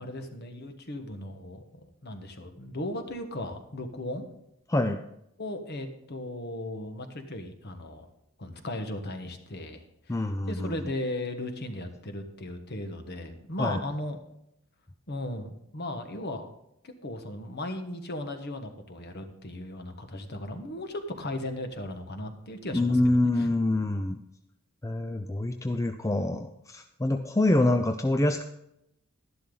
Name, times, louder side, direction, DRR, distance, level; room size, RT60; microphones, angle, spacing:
voice 1, 0.0-4.3 5.4-8.1 8.4-14.2 15.1-16.5 16.8-23.5, left 1 dB, 50° left, 6 dB, 1.4 m, -37 dB
voice 2, 4.7-5.0 10.1-10.7 13.6-13.8 22.7-24.2 24.8-28.4, left 2 dB, 15° left, 7 dB, 0.4 m, -26 dB
12.0 x 11.5 x 3.9 m, 0.79 s
head